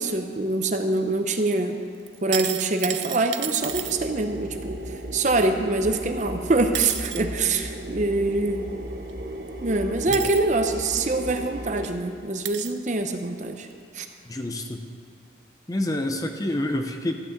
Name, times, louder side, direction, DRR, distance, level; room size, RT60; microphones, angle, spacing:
voice 1, 0.0-1.8 2.2-4.8 5.1-8.7 9.6-13.7 13.9-14.1, right 2 dB, 40° right, 6 dB, 0.7 m, -24 dB
sound 1, 2.1-3.9 6.2-6.3 6.7-7.2 9.1-9.2 10.1-10.4 11.4-11.5 11.8-11.9 12.4-12.8 13.6-13.7, right 13 dB, 85° right, 0.5 m, -32 dB
sound 2, 3.6-11.9, right 1 dB, 60° right, 1.1 m, -35 dB
voice 2, 14.3-14.8 15.7-17.1, left 1 dB, 20° left, 5 dB, 0.6 m, -27 dB
13.5 x 6.1 x 8.2 m, 2.2 s
head